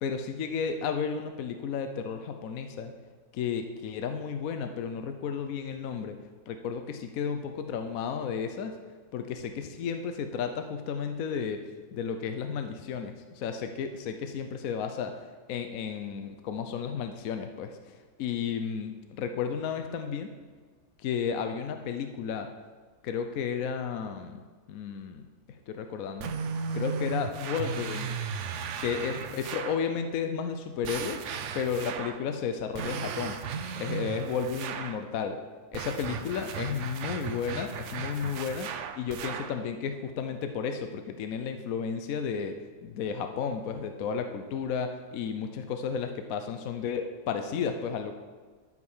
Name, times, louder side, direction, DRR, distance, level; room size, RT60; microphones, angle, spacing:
voice 1, 0.0-2.9 3.3-6.2 6.5-8.7 9.1-11.6 11.9-15.1 15.5-17.7 18.2-20.3 21.0-22.5 23.0-24.4 24.7-25.2 25.7-26.3 26.7-28.2 28.8-31.2 31.5-33.4 33.8-35.4 35.7-38.7 39.0-42.5 42.8-48.1, left 6 dB, 65° left, 6 dB, 1.0 m, -33 dB
sound 1, 26.2-29.9 30.8-32.3 32.7-35.0 35.7-39.6, right 6 dB, 60° right, 0.8 m, -36 dB
12.0 x 5.0 x 5.5 m, 1.4 s
omnidirectional pair, 1.7 m